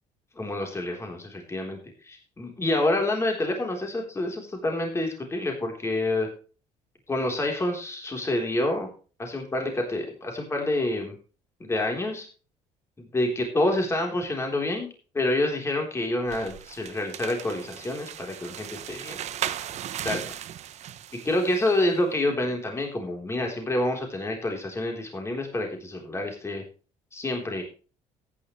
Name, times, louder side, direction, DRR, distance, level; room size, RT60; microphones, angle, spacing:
voice 1, 0.4-1.8 2.0-6.3 7.1-8.9 9.2-11.1 11.6-12.3 13.0-14.9 15.1-19.2 20.0-20.3 21.1-26.6 27.1-27.6, left 1 dB, 20° left, 2 dB, 3.7 m, -28 dB
sound 1, 16.2-21.8, right 11 dB, 55° right, 0.9 m, -37 dB
14.0 x 9.9 x 3.2 m, 0.37 s
cardioid pair, 105°, 13 cm